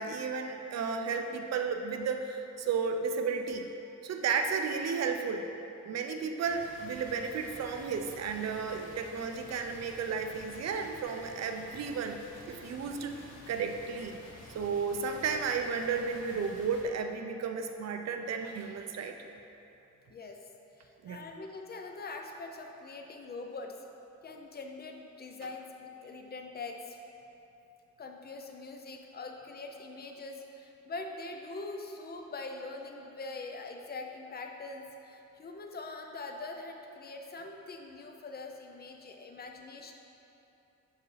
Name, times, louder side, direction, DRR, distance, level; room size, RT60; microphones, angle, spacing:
voice 1, 0.0-3.7 4.0-5.4 5.8-14.2 14.5-19.2 21.0-21.2, right 5 dB, 60° right, 5 dB, 0.5 m, -33 dB
sound 1, 6.5-16.8, left 2 dB, 85° left, 1.1 m, -51 dB
voice 2, 20.8-23.8 24.2-27.0 28.0-39.9, left 3 dB, 35° left, 3 dB, 0.5 m, -43 dB
6.8 x 4.6 x 3.2 m, 2.9 s
cardioid pair, 100°, 30 cm